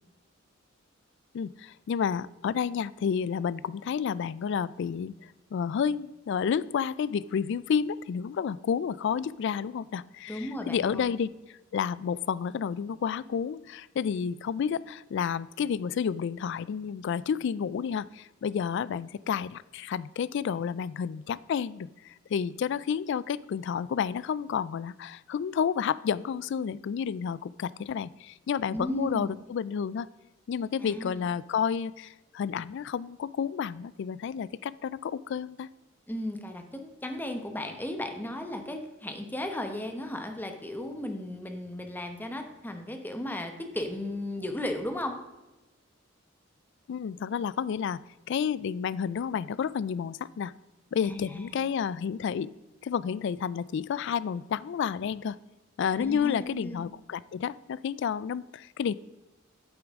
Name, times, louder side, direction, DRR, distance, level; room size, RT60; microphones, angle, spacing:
voice 1, 1.3-11.3 11.7-30.1 30.5-35.7 46.9-48.0 48.3-50.5 50.9-52.5 52.8-55.4 55.8-58.9, left 7 dB, 65° left, 19 dB, 0.3 m, -30 dB
voice 2, 10.3-11.2 28.7-29.4 30.8-31.2 36.1-45.2 51.0-51.6 56.0-56.9, left 1 dB, 10° left, 5 dB, 0.9 m, -35 dB
8.9 x 7.9 x 3.6 m, 1.1 s
head